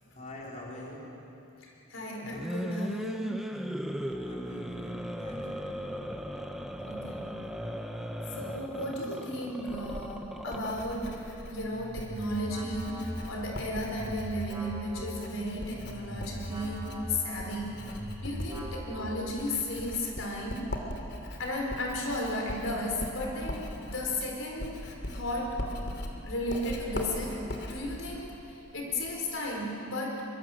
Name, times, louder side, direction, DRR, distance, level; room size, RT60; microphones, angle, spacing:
voice 1, 0.1-1.4 4.2-6.0, left 1 dB, 35° left, -3 dB, 4.1 m, -44 dB
voice 2, 1.6-3.3 6.9-7.3 8.3-17.8 18.2-20.7 21.4-25.6 26.2-30.3, left 1 dB, 75° left, -1 dB, 4.3 m, -34 dB
sound 1, 2.2-11.0, equal, ahead, 1.1 m, -37 dB
Writing, 9.7-29.2, left 1 dB, 55° left, 2.9 m, -41 dB
sound 2, 11.5-19.6, equal, 20° right, 4.3 m, -41 dB
24.5 x 24.0 x 7.8 m, 2.9 s
head